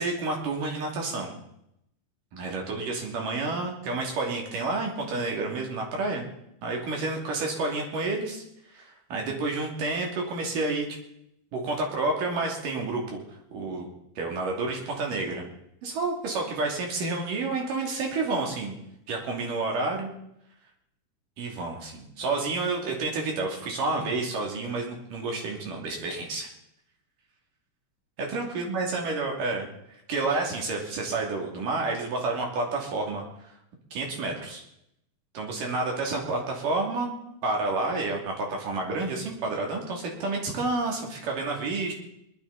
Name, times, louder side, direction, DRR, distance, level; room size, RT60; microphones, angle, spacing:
voice 1, 0.0-1.4 2.3-6.2 6.6-8.4 8.7-10.9 11.5-13.2 13.5-13.9 14.2-15.5 15.8-18.8 19.1-20.1 21.4-26.5 28.3-29.7 30.1-33.5 33.9-34.6 35.3-37.1 37.4-41.9, right 3 dB, 85° right, 1 dB, 4.4 m, -29 dB
20.5 x 12.0 x 4.2 m, 0.78 s
omnidirectional pair, 3.7 m